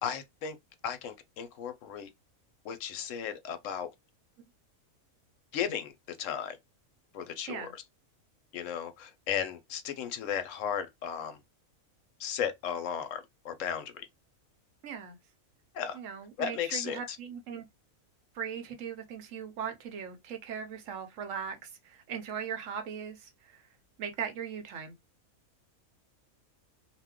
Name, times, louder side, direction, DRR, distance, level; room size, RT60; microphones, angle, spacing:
voice 1, 0.0-0.6 0.8-2.1 2.6-3.9 5.5-6.6 7.1-7.7 8.5-11.4 12.2-14.1 15.7-16.0 16.4-17.2, left 8 dB, 70° left, 0.9 m, -35 dB
voice 2, 14.8-15.2 15.9-17.7 18.3-23.6 24.0-25.0, right 7 dB, 65° right, 1.0 m, -39 dB
2.5 x 2.2 x 3.5 m
omnidirectional pair, 1.5 m